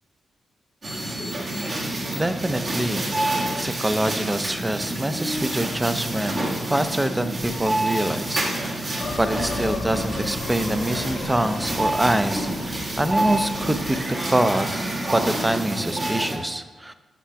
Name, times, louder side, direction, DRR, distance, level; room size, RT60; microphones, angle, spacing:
sound 1, 0.8-16.4, right 1 dB, 45° right, 1.5 m, -28 dB
voice 1, 2.1-3.2 3.5-6.4 6.7-8.8 9.2-14.0 14.3-16.9, right 1 dB, 15° right, 10 dB, 0.5 m, -25 dB
sound 2, 9.0-14.0, left 4 dB, 65° left, 0.6 m, -36 dB
5.9 x 5.7 x 5.6 m, 1.2 s
cardioid pair, 95°, 0 cm